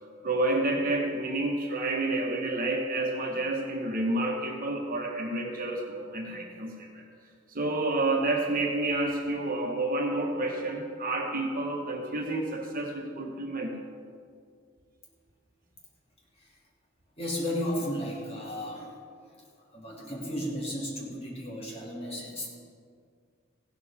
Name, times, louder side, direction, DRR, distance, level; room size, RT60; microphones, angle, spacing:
voice 1, 0.2-7.0 7.5-13.8, right 2 dB, 45° right, 1 dB, 1.5 m, -29 dB
voice 2, 17.2-19.0 19.7-22.5, equal, 30° left, -4 dB, 2.6 m, -34 dB
16.0 x 12.0 x 3.6 m, 2.1 s
head